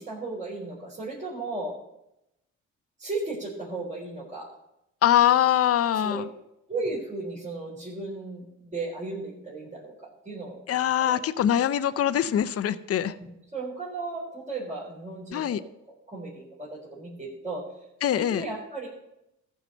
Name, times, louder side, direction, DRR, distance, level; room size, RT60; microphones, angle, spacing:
voice 1, 0.0-1.7 3.0-4.5 6.0-6.2 6.7-11.2 13.1-15.7 16.1-17.6 18.1-18.9, right 3 dB, 25° right, -7 dB, 3.9 m, -35 dB
voice 2, 5.0-6.3 10.7-13.1 15.3-15.6 18.0-18.4, left 10 dB, 50° left, 14 dB, 0.7 m, -23 dB
14.5 x 4.9 x 6.6 m, 0.85 s
cardioid pair, 90°, 30 cm